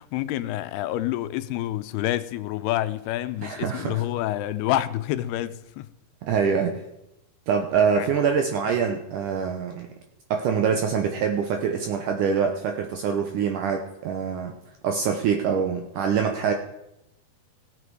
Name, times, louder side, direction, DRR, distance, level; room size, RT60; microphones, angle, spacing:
voice 1, 0.0-5.9 7.9-8.1, left 14 dB, 85° left, 2.6 m, -28 dB
voice 2, 3.4-4.0 6.3-6.8 7.5-9.9 10.3-14.5 14.8-16.5, right 6 dB, 75° right, 1.9 m, -24 dB
16.5 x 7.8 x 4.7 m
omnidirectional pair, 4.6 m